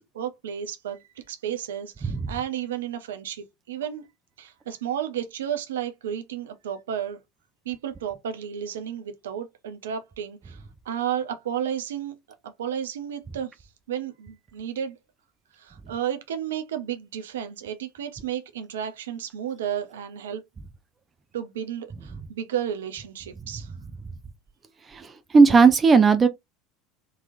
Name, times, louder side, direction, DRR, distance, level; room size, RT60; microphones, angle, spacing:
voice 1, 0.1-1.0 1.3-4.0 4.4-7.2 7.7-10.6 10.9-12.1 12.4-13.5 13.9-15.0 15.6-20.4 21.3-23.7, right 9 dB, 70° right, 0.6 m, -32 dB
voice 2, 25.3-26.3, right 4 dB, 25° right, 0.6 m, -16 dB
3.9 x 2.9 x 2.6 m
figure-of-eight pair, 75°, 0 cm